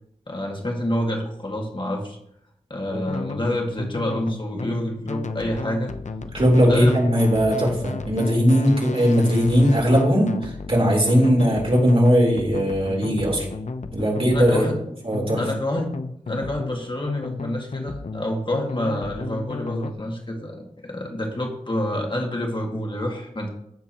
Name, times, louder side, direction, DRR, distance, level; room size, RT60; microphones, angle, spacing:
voice 1, 0.3-2.2 2.7-5.9 6.6-7.0 11.1-11.3 14.3-14.8 15.4-15.9 16.3-23.5, left 1 dB, 40° left, 0 dB, 2.0 m, -28 dB
sound 1, 3.1-19.9, left 4 dB, 65° left, 0.6 m, -33 dB
voice 2, 6.3-13.5 13.9-14.7 15.0-15.4, equal, 45° right, -3 dB, 3.9 m, -19 dB
15.5 x 7.1 x 3.0 m, 0.74 s
wide cardioid pair, 80°, 13 cm